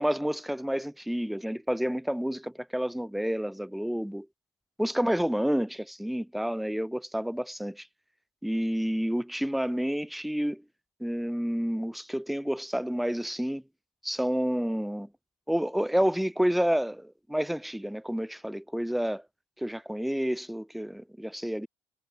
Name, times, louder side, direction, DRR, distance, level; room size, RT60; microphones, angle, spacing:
voice 1, 0.0-4.3 4.8-7.9 8.4-10.6 11.0-13.6 14.0-15.1 15.5-19.2 19.6-21.7, equal, ahead, 1.0 m, -29 dB
cardioid pair, 105°, 9 cm